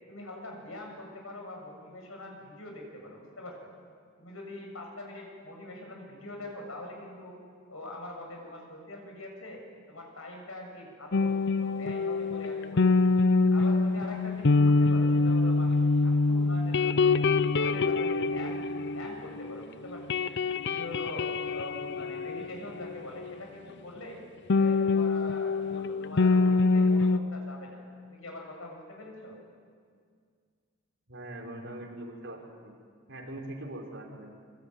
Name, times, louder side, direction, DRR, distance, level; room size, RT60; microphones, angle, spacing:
voice 1, 0.1-3.7 4.2-7.4 7.7-9.6 9.9-11.3 11.6-13.0 13.5-17.2 17.5-20.2 20.6-24.2 24.5-29.3, left 1 dB, 90° left, 1 dB, 7.6 m, -43 dB
sound 1, 11.1-19.6 19.9-23.3 24.5-27.2, left 3 dB, 60° left, 0.7 m, -25 dB
voice 2, 31.1-32.7 33.1-34.3, right 1 dB, 65° right, 0 dB, 5.2 m, -41 dB
25.0 x 24.0 x 9.3 m, 2.1 s
head